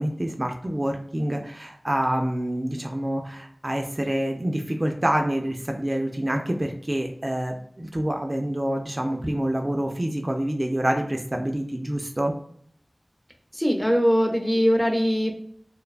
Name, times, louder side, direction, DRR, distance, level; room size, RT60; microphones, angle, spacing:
voice 1, 0.0-12.3, right 1 dB, 40° right, 3 dB, 0.3 m, -27 dB
voice 2, 13.5-15.3, equal, 5° left, 2 dB, 0.6 m, -21 dB
2.5 x 2.2 x 2.3 m, 0.65 s
wide cardioid pair, 40°, 0 cm